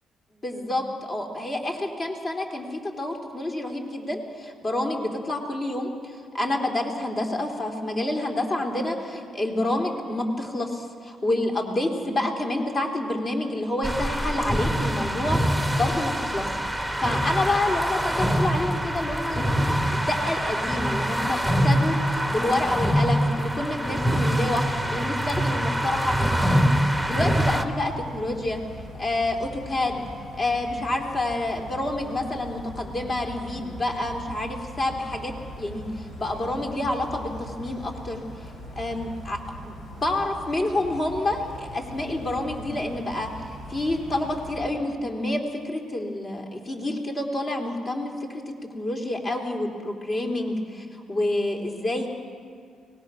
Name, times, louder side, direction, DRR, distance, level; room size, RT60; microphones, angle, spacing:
voice 1, 0.4-22.0 22.3-26.2 26.5-26.7 27.0-28.6 29.0-30.1 30.4-38.2 38.7-39.4 39.6-43.3 43.7-52.1, left 1 dB, 40° left, 1 dB, 3.4 m, -28 dB
sound 1, 13.8-27.6, equal, 5° left, 1.4 m, -24 dB
sound 2, 25.9-44.7, left 1 dB, 70° left, 5.5 m, -41 dB
24.0 x 20.0 x 6.3 m, 2.1 s
cardioid pair, 90°, 0 cm